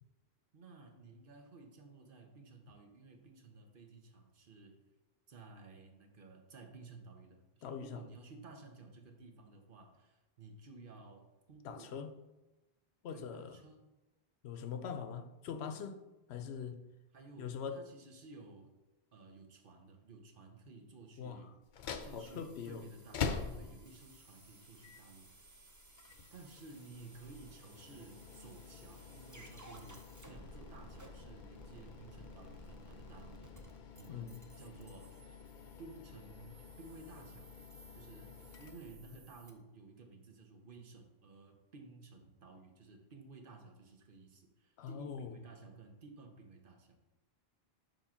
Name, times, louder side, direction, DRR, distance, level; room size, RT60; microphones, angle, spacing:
voice 1, 0.5-4.8 5.3-12.1 13.1-13.9 17.1-18.8 19.1-21.5 22.0-25.3 26.3-35.2 35.8-37.5 37.9-47.0, right 3 dB, 60° right, 4 dB, 1.0 m, -55 dB
voice 2, 7.6-8.0 11.6-12.1 13.0-13.6 14.4-16.0 16.3-16.8 17.4-17.8 21.2-21.4 22.1-22.8 34.1-34.4 44.8-45.3, left 7 dB, 85° left, 9 dB, 0.9 m, -42 dB
sound 1, 21.6-39.4, left 6 dB, 55° left, 0.6 m, -47 dB
sound 2, 22.0-39.5, right 2 dB, 20° right, 0.6 m, -58 dB
7.1 x 3.0 x 5.6 m, 1.1 s
omnidirectional pair, 1.1 m